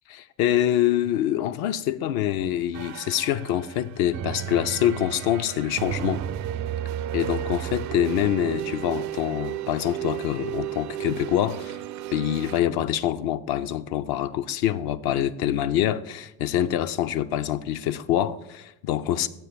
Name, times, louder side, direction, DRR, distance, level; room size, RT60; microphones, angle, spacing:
voice 1, 0.2-6.2 7.1-11.8 12.1-19.3, left 11 dB, 55° left, 0.6 m, -25 dB
sound 1, 2.4-12.6, right 11 dB, 40° right, 0.4 m, -33 dB
8.0 x 4.6 x 6.7 m
hypercardioid pair, 60°, 44 cm